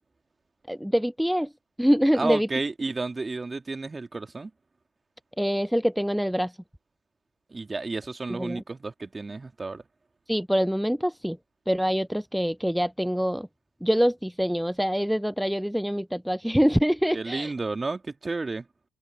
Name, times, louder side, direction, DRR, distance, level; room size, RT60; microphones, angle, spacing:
voice 1, 0.7-1.5 1.8-2.5 5.4-6.6 8.4-8.6 10.3-11.4 11.7-13.5 13.8-17.5, equal, ahead, 0.5 m, -25 dB
voice 2, 2.1-4.5 7.5-9.8 17.1-18.7, right 3 dB, 25° right, 2.8 m, -31 dB
open air
hypercardioid pair, 50°, 0 cm